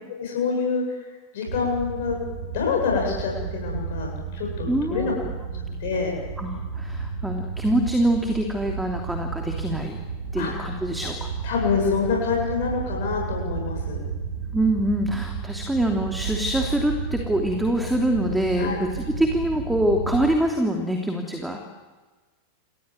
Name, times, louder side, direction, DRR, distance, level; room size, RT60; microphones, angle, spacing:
voice 1, 0.2-0.8 1.3-2.2 2.5-5.1 5.8-6.1 10.4-10.5 11.4-14.0 18.6-18.8, left 5 dB, 55° left, 0 dB, 7.9 m, -26 dB
sound 1, 1.5-20.3, right 5 dB, 70° right, 8.0 m, -32 dB
voice 2, 4.7-5.3 6.4-10.0 10.3-11.3 14.5-21.6, right 1 dB, 5° right, 3 dB, 3.1 m, -25 dB
29.0 x 23.0 x 8.2 m, 1.3 s
figure-of-eight pair, 90°, 0 cm